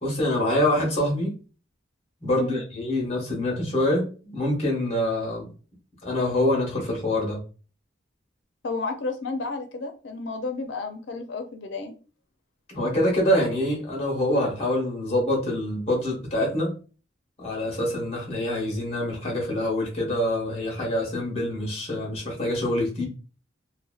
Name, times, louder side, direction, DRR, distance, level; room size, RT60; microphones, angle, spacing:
voice 1, 0.0-1.3 2.2-5.5 6.0-7.4 12.7-16.7 17.4-23.0, left 1 dB, 30° left, -2 dB, 0.9 m, -25 dB
voice 2, 2.3-2.6 8.6-11.9, left 3 dB, 70° left, 5 dB, 0.5 m, -32 dB
2.7 x 2.1 x 2.3 m, 0.37 s
head